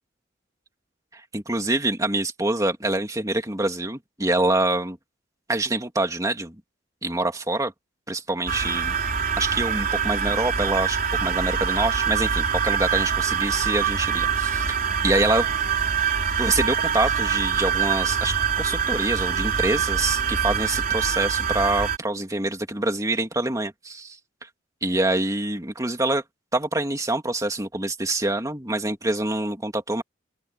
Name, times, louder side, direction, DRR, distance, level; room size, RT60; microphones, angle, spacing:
voice 1, 1.1-5.0 5.5-6.5 7.0-7.7 8.1-8.9 9.4-14.8 15.0-15.5 16.4-24.2 24.8-26.2 26.5-30.0, right 2 dB, 15° right, 2.6 m, -25 dB
sound 1, 8.5-22.0, right 7 dB, 45° right, 3.6 m, -24 dB
open air
head